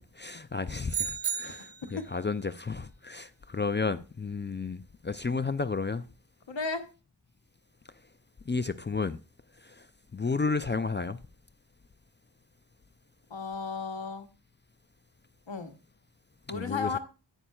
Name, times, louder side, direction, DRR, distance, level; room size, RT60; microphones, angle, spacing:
voice 1, 0.2-6.0 8.5-9.2 9.6-9.9 10.1-11.2 16.5-17.0, left 4 dB, 30° left, 0.3 m, -32 dB
sound 1, 0.9-2.0, right 7 dB, 75° right, 0.8 m, -33 dB
voice 2, 6.5-6.8 13.3-14.3 15.5-15.7 16.5-17.0, left 5 dB, 90° left, 1.0 m, -34 dB
11.0 x 9.0 x 2.3 m
wide cardioid pair, 50°, 44 cm